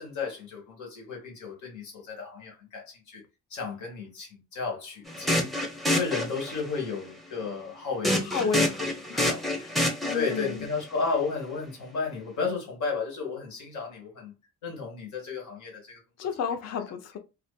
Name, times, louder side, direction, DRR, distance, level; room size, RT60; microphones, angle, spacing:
voice 1, 0.0-3.2 3.5-5.5 5.9-8.7 9.2-9.4 10.1-14.3 14.6-16.0, left 4 dB, 75° left, 1.3 m, -33 dB
sound 1, 5.1-6.8 8.0-10.5, left 1 dB, ahead, 0.6 m, -27 dB
voice 2, 8.2-8.6 9.1-9.3 9.6-9.7 10.0-10.7 16.2-17.2, left 6 dB, 60° left, 0.6 m, -31 dB
2.5 x 2.4 x 2.2 m
cardioid pair, 90°, 30 cm